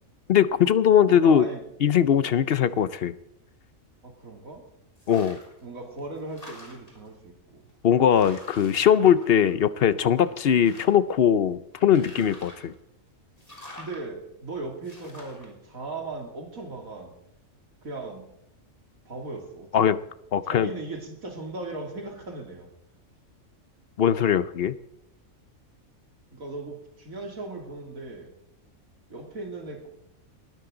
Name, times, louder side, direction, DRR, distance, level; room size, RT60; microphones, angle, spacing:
voice 1, 0.3-1.5 1.8-3.1 5.1-5.4 7.8-12.7 19.7-20.0 20.3-20.7 24.0-24.7, left 9 dB, 55° left, 15 dB, 0.7 m, -20 dB
voice 2, 1.1-1.6 4.0-4.6 5.6-7.6 13.8-17.1 17.8-18.2 19.0-20.0 20.5-22.7 26.3-28.3 29.1-29.9, right 3 dB, 90° right, 2 dB, 3.2 m, -38 dB
sound 1, 5.0-5.6 6.0-7.1 7.7-7.8 8.1-9.8 10.2-11.1 11.8-12.7 13.4-14.0 14.8-15.5, left 1 dB, 25° left, 3.7 m, -47 dB
20.0 x 13.0 x 3.9 m, 0.83 s
omnidirectional pair, 1.4 m